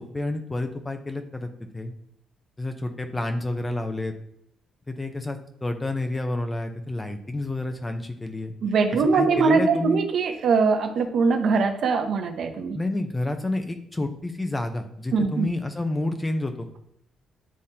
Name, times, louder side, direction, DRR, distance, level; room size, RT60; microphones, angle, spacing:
voice 1, 0.0-1.9 2.6-4.1 4.9-8.5 9.1-10.0 12.7-16.7, left 2 dB, 20° left, 6 dB, 0.8 m, -29 dB
voice 2, 8.6-12.8 15.1-15.5, right 4 dB, 65° right, 6 dB, 0.8 m, -22 dB
9.5 x 3.5 x 2.9 m, 0.73 s
cardioid pair, 90°, 0 cm